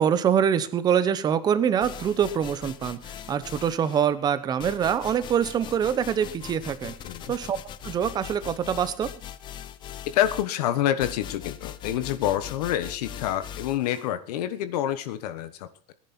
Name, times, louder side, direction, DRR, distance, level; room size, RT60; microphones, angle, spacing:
voice 1, 0.0-6.9 7.3-7.6 7.8-9.1, right 8 dB, 20° right, 13 dB, 0.9 m, -24 dB
sound 1, 1.8-4.1 4.6-14.1, left 10 dB, 20° left, 0.6 m, -41 dB
voice 2, 10.0-15.7, left 11 dB, 70° left, 11 dB, 1.3 m, -27 dB
19.0 x 10.5 x 4.4 m, 0.43 s
supercardioid pair, 160°, 21 cm